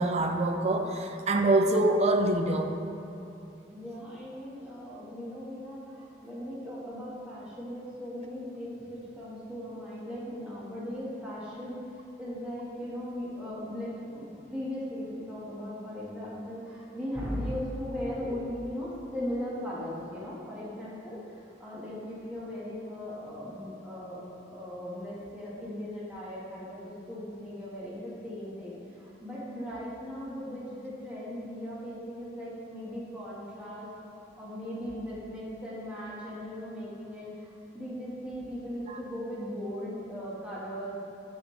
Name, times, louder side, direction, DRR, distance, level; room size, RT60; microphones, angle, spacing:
voice 1, 0.0-2.7 38.9-39.0, right 2 dB, 35° right, 5 dB, 0.5 m, -25 dB
voice 2, 3.7-11.8 12.2-41.1, equal, 5° right, -8 dB, 1.4 m, -38 dB
8.0 x 6.3 x 3.2 m, 2.8 s
head